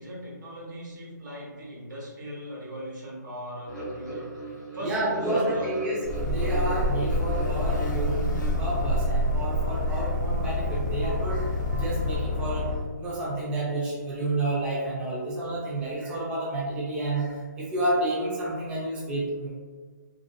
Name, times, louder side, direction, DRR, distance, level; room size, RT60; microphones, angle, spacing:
voice 1, 0.0-4.3 4.7-5.7, equal, 85° right, -4 dB, 1.0 m, -39 dB
sound 1, 3.7-8.7, right 1 dB, 5° left, 0.8 m, -36 dB
voice 2, 4.8-12.7 13.0-19.5, right 1 dB, 10° right, -6 dB, 0.4 m, -30 dB
Buzz, 6.0-12.2, right 2 dB, 80° left, 0.5 m, -30 dB
sound 2, 6.1-12.8, left 4 dB, 60° right, 0.6 m, -29 dB
2.6 x 2.4 x 2.3 m, 1.5 s
hypercardioid pair, 150°, 10 cm